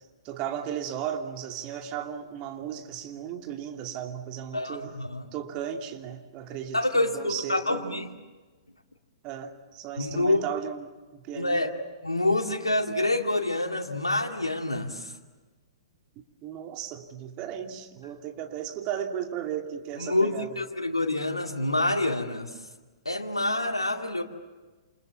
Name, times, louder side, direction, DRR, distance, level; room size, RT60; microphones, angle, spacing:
voice 1, 0.2-4.9 5.3-7.9 9.2-11.7 16.4-20.6, right 9 dB, 30° right, 2.7 m, -35 dB
voice 2, 4.5-5.3 6.7-8.1 10.0-10.4 11.3-11.7 12.0-15.1 20.0-22.5 23.1-24.2, left 2 dB, 85° left, 2.3 m, -27 dB
28.5 x 28.5 x 7.3 m
figure-of-eight pair, 115°, 3 cm